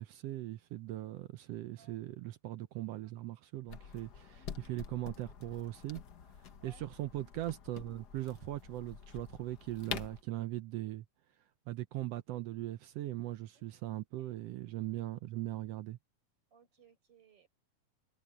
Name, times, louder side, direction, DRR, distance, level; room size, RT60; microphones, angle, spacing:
voice 1, 0.0-6.0 6.6-11.0 11.7-16.0, right 15 dB, 75° right, 1.5 m, -40 dB
sound 1, 3.7-10.2, left 7 dB, 55° left, 1.1 m, -47 dB
voice 2, 4.3-4.8 6.6-6.8 13.5-13.6 14.2-14.4 16.5-17.5, right 4 dB, 50° right, 6.4 m, -63 dB
omnidirectional pair, 3.4 m